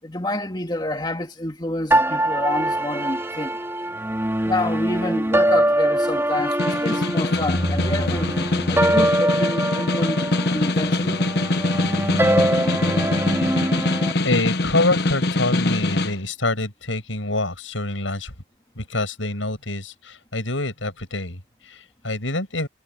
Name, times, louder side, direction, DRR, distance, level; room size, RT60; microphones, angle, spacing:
voice 1, 0.0-3.6 4.4-11.2, left 1 dB, 20° left, 2.2 m, -28 dB
sound 1, 1.9-14.1, right 1 dB, 15° right, 2.6 m, -23 dB
Snare drum, 6.4-16.2, left 2 dB, 55° left, 1.1 m, -23 dB
voice 2, 14.2-18.3 18.8-22.7, left 2 dB, 80° left, 7.5 m, -26 dB
head